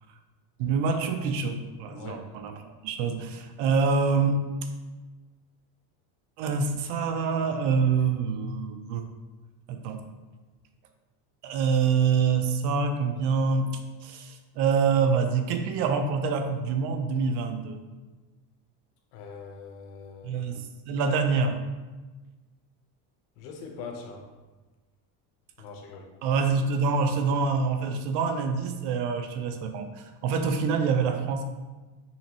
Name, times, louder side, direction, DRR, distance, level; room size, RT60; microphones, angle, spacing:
voice 1, 0.6-2.6 2.8-4.4 6.4-9.0 9.7-10.1 11.4-17.8 20.2-21.6 26.2-31.4, right 5 dB, 65° right, 6 dB, 0.7 m, -26 dB
voice 2, 19.1-20.4 23.4-24.3 25.6-26.1, left 5 dB, 90° left, 2 dB, 1.0 m, -42 dB
5.7 x 3.1 x 3.0 m, 1.2 s
cardioid pair, 150°, 44 cm